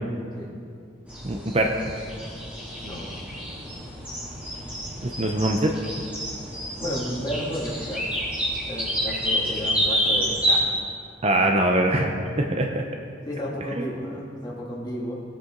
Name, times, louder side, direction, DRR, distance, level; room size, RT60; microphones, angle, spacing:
sound 1, 1.1-10.6, equal, 5° right, 3.5 m, -29 dB
voice 1, 1.2-1.7 5.0-5.7 11.2-12.8, right 1 dB, 30° right, 3 dB, 0.7 m, -23 dB
voice 2, 2.8-3.2 6.8-8.1 8.7-10.7 13.3-15.2, equal, 20° left, -5 dB, 2.3 m, -32 dB
19.5 x 8.1 x 3.9 m, 2.4 s
head